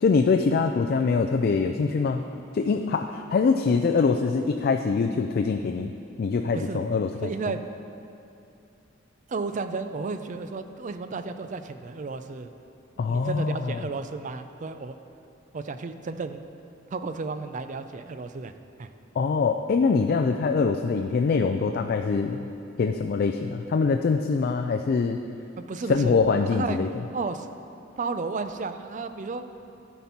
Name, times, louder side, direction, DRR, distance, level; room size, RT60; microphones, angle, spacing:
voice 1, 0.0-2.2 2.5-5.9 6.2-7.3 13.0-13.8 19.2-22.5 22.8-25.2 25.9-26.9, left 4 dB, 50° left, 5 dB, 0.3 m, -24 dB
voice 2, 6.5-6.9 7.2-7.6 9.3-12.5 13.0-14.9 15.5-16.4 16.9-18.5 18.8-18.9 25.6-26.2 26.5-26.8 27.1-27.5 28.0-29.4, right 4 dB, 40° right, 9 dB, 0.4 m, -33 dB
12.5 x 4.3 x 5.8 m, 2.7 s
head